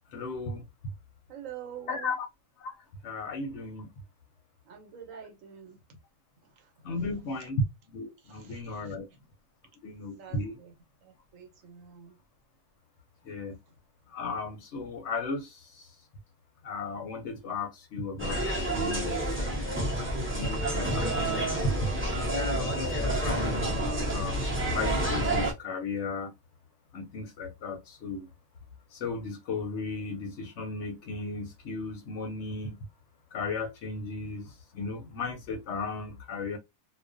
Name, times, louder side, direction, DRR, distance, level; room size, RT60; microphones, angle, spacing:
voice 1, 0.1-0.6 1.9-2.2 2.6-2.7 3.0-3.9 6.8-7.6 7.9-9.1 9.8-10.6 13.3-13.6 14.1-15.5 16.6-19.2 20.4-21.4 22.6-23.9 24.1-24.4 24.7-26.3 26.9-28.2 29.0-32.8 33.3-34.5 34.7-36.6, left 3 dB, 65° left, 0.8 m, -35 dB
voice 2, 1.3-2.2 4.6-5.8 6.4-7.1 7.4-7.5 8.2-9.2 10.2-10.7 11.0-12.2, right 8 dB, 70° right, 1.0 m, -47 dB
sound 1, 18.2-25.5, right 1 dB, 15° right, 0.5 m, -29 dB
2.4 x 2.1 x 2.4 m
omnidirectional pair, 1.4 m